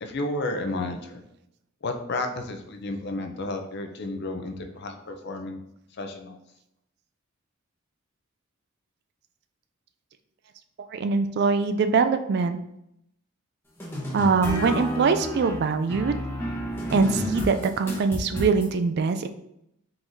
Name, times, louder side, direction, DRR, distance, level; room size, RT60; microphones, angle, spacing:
voice 1, 0.0-1.2 1.8-5.6 6.0-6.4, left 2 dB, 50° left, 6 dB, 0.5 m, -32 dB
voice 2, 10.9-12.6 14.1-16.3 16.9-19.3, right 4 dB, 50° right, 9 dB, 0.3 m, -23 dB
sound 1, 13.8-18.7, left 1 dB, 10° left, 0.9 m, -31 dB
4.6 x 3.8 x 2.6 m, 0.79 s
head